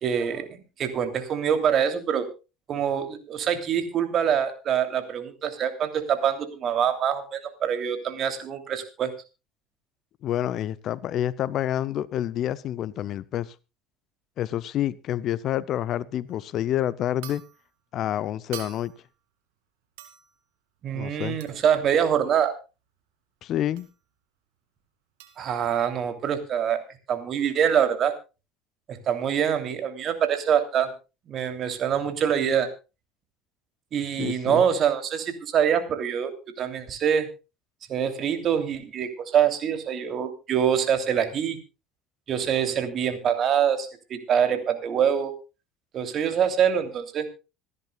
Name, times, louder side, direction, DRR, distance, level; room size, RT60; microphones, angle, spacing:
voice 1, 0.0-2.3 2.7-9.1 20.8-22.5 25.4-26.8 27.1-28.1 28.9-30.9 31.3-32.7 33.9-37.3 37.9-41.6 42.3-45.3 45.9-47.3, right 8 dB, 45° right, 3.0 m, -25 dB
voice 2, 10.2-13.5 14.4-17.4 17.9-18.9 20.9-21.4 23.4-23.9 34.2-34.6, left 12 dB, 50° left, 0.6 m, -28 dB
sound 1, 16.3-16.5 17.2-17.7 18.5-19.1 20.0-20.4 21.4-21.7 23.8-23.9 25.2-25.5, right 12 dB, 70° right, 2.5 m, -44 dB
26.0 x 11.0 x 2.3 m
hypercardioid pair, 70°, 0 cm